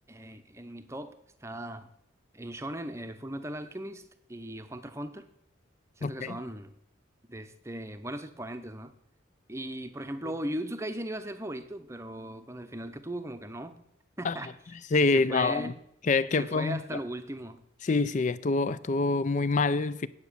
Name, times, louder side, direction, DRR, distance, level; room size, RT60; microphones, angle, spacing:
voice 1, 0.1-1.9 2.3-5.3 6.0-6.7 7.3-8.9 9.5-13.8 14.2-14.8 15.1-15.8 16.3-17.6, right 1 dB, 15° right, 0.7 m, -38 dB
voice 2, 6.0-6.4 14.2-14.4 14.9-15.7 16.1-16.8 17.8-20.1, left 3 dB, 40° left, 0.4 m, -26 dB
9.5 x 8.0 x 6.8 m
head